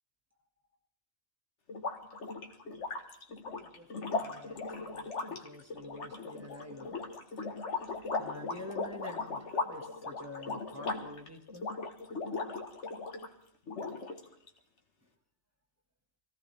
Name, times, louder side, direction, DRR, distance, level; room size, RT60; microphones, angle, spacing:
sound 1, 1.7-13.3 13.7-14.5, left 3 dB, 80° left, 1.8 m, -38 dB
voice 1, 3.6-6.9 8.2-11.7, left 2 dB, 15° right, 2 dB, 1.9 m, -48 dB
24.5 x 16.5 x 3.5 m, 0.70 s
omnidirectional pair, 1.2 m